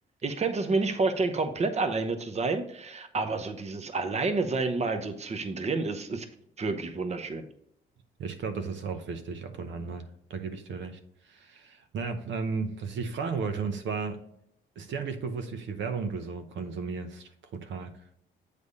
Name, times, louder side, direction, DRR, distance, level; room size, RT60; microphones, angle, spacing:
voice 1, 0.2-6.3 6.6-7.5, right 3 dB, 35° right, 8 dB, 0.8 m, -29 dB
voice 2, 8.2-11.0 11.3-14.2 14.8-17.9, right 5 dB, 70° right, 7 dB, 0.9 m, -34 dB
8.2 x 3.4 x 5.4 m, 0.72 s
cardioid pair, 90°, 20 cm